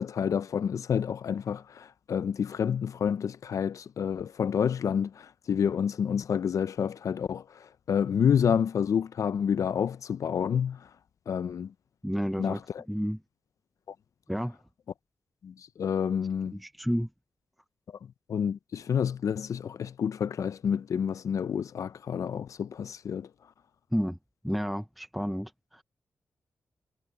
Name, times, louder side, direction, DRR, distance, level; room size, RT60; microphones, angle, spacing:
voice 1, 0.0-10.9 11.3-11.7 12.4-12.8 15.4-16.6 18.3-23.3, left 7 dB, 70° left, 0.4 m, -29 dB
voice 2, 12.0-12.6 12.9-13.2 14.3-14.6 16.5-17.1 23.9-24.2 24.4-25.8, equal, ahead, 0.5 m, -31 dB
wide cardioid pair, 125°, 6 cm